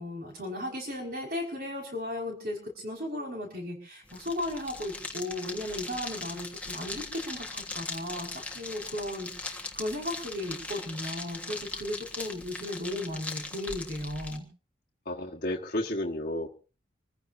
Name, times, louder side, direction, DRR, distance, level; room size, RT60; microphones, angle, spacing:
voice 1, 0.0-14.5, left 1 dB, 50° right, 1 dB, 5.3 m, -36 dB
sound 1, 4.0-14.4, left 3 dB, 5° left, 1.4 m, -40 dB
voice 2, 15.1-16.5, left 1 dB, 50° left, -2 dB, 1.4 m, -32 dB
26.5 x 15.0 x 2.7 m, 0.35 s
head